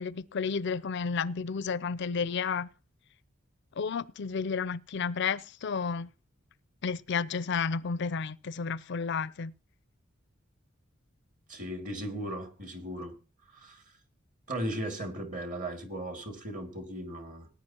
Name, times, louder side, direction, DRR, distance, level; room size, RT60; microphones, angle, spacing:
voice 1, 0.0-2.7 3.8-6.1 6.8-9.5, left 5 dB, 60° left, 0.5 m, -32 dB
voice 2, 11.5-13.1 13.5-13.8 14.5-17.5, right 1 dB, 40° right, 2.4 m, -37 dB
19.0 x 10.0 x 2.9 m
head